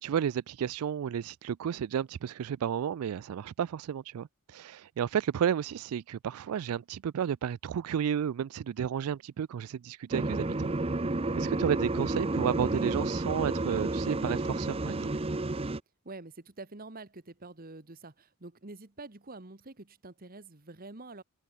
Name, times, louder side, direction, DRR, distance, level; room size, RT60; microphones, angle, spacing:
voice 1, 0.0-10.7 11.4-15.1, right 8 dB, 75° right, 0.3 m, -32 dB
sound 1, 10.1-15.8, right 2 dB, 25° right, 0.8 m, -31 dB
voice 2, 16.0-21.2, right 3 dB, 40° right, 1.6 m, -46 dB
head